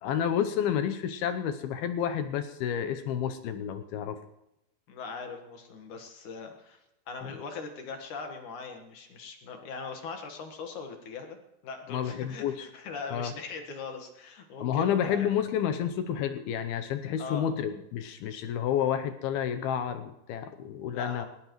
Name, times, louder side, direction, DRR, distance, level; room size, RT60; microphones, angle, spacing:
voice 1, 0.0-4.2 11.9-12.7 13.1-13.3 14.6-21.3, left 9 dB, 75° left, 9 dB, 2.4 m, -30 dB
voice 2, 4.9-6.8 7.1-11.4 11.6-15.3 17.2-17.5 20.9-21.3, left 4 dB, 55° left, 4 dB, 2.4 m, -40 dB
20.0 x 19.0 x 3.1 m, 0.86 s
omnidirectional pair, 5.1 m